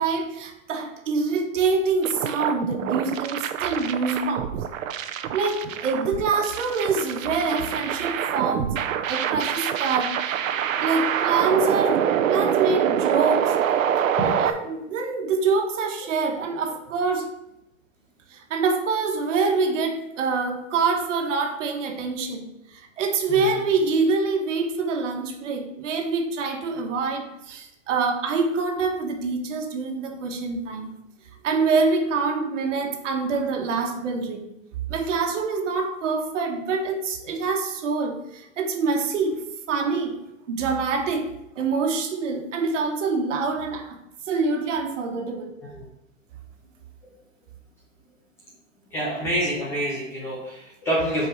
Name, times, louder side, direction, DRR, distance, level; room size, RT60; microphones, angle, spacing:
voice 1, 0.0-4.5 5.3-8.8 9.1-10.2 10.8-13.5 14.2-17.3 18.3-30.9 31.4-34.5 34.9-40.2 40.5-44.0 44.3-45.5, right 4 dB, 65° right, 4 dB, 1.5 m, -25 dB
sound 1, 2.0-14.5, right 9 dB, 85° right, 0.7 m, -25 dB
voice 2, 48.9-51.3, equal, 5° left, -5 dB, 0.3 m, -27 dB
6.0 x 4.7 x 5.6 m, 0.86 s
hypercardioid pair, 155°, 39 cm